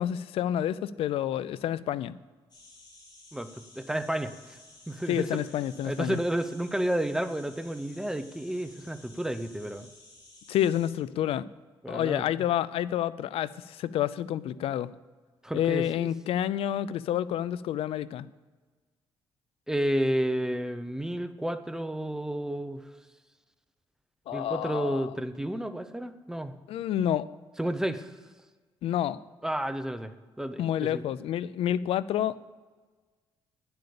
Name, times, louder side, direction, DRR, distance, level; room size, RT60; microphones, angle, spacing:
voice 1, 0.0-2.1 5.1-6.2 10.5-11.4 11.9-14.9 15.5-18.3 24.3-25.1 26.7-27.3 28.8-29.2 30.6-32.4, left 11 dB, 80° left, 18 dB, 0.5 m, -29 dB
sound 1, 2.5-10.9, left 2 dB, 45° left, 3.7 m, -54 dB
voice 2, 3.3-4.6 4.9-5.4 5.8-9.9 11.8-12.3 15.4-16.1 19.7-22.8 24.3-26.5 27.6-28.1 29.4-30.1 30.4-31.0, right 1 dB, 5° right, 10 dB, 0.8 m, -31 dB
10.0 x 7.9 x 6.9 m, 1.4 s
cardioid pair, 95°, 10 cm